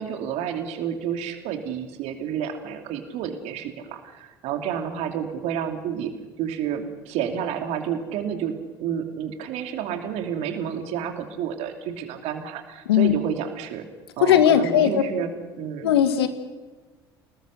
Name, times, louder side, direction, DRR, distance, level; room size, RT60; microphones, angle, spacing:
voice 1, 0.0-6.1 6.4-13.9 14.2-15.3 15.6-15.9, right 8 dB, 55° right, 5 dB, 2.9 m, -30 dB
voice 2, 14.2-15.0 15.8-16.3, left 10 dB, 75° left, 9 dB, 2.0 m, -18 dB
28.5 x 19.5 x 6.7 m, 1.3 s
figure-of-eight pair, 65°, 13 cm